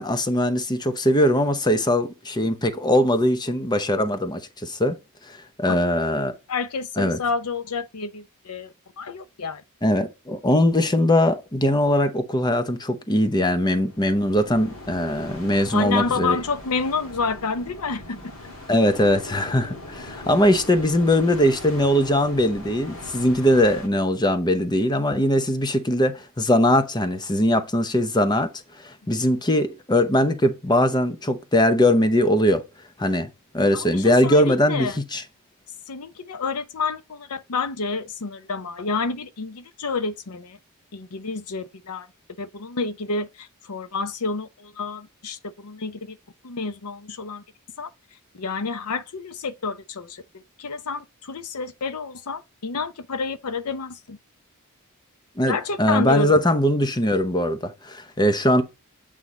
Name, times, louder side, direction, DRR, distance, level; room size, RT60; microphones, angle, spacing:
voice 1, 0.0-5.0 5.3-6.3 7.0-7.2 9.8-16.4 18.7-28.5 28.8-32.6 33.0-33.3 33.5-35.2 55.4-58.6, left 1 dB, 20° left, 0.7 m, -21 dB
voice 2, 6.5-9.6 15.7-18.3 33.7-35.0 35.9-40.6 40.9-42.1 42.4-46.2 46.4-47.4 47.8-47.9 48.3-54.2 55.5-56.4, left 4 dB, 90° left, 0.7 m, -29 dB
sound 1, 13.7-23.9, left 1 dB, 65° left, 2.2 m, -40 dB
8.2 x 3.6 x 4.1 m
head